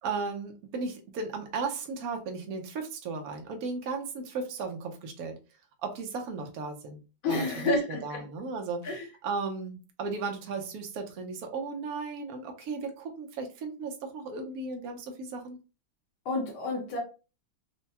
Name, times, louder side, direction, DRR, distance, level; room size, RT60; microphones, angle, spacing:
voice 1, 0.0-5.4 5.8-7.0 7.3-15.6, right 4 dB, 60° right, 1.1 m, -35 dB
voice 2, 7.2-8.2 8.8-9.0 16.3-17.0, left 2 dB, 80° left, 1.8 m, -29 dB
4.4 x 2.2 x 2.8 m
omnidirectional pair, 2.1 m